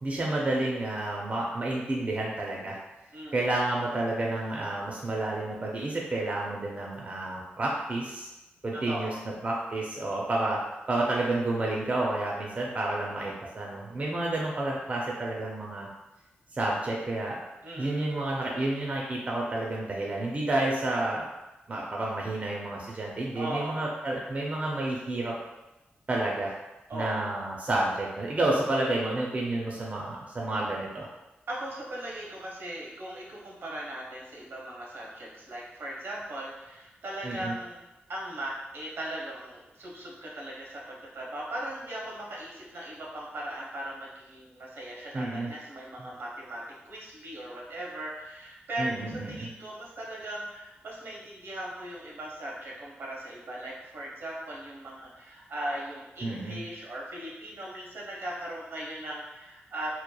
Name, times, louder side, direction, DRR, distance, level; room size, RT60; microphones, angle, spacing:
voice 1, 0.0-2.8 3.3-8.3 8.6-9.1 9.4-10.6 10.9-15.9 16.5-17.4 17.8-21.3 21.7-25.4 26.1-26.5 26.9-31.1 37.2-37.5 45.1-45.5 46.0-46.1 48.8-49.5 56.2-56.6, right 2 dB, 35° right, -3 dB, 0.4 m, -30 dB
voice 2, 8.7-9.3 17.6-18.1 23.3-23.9 26.9-27.4 31.5-59.9, right 1 dB, 75° right, -4 dB, 0.7 m, -38 dB
2.9 x 2.1 x 2.2 m, 1.0 s
cardioid pair, 75°, 4 cm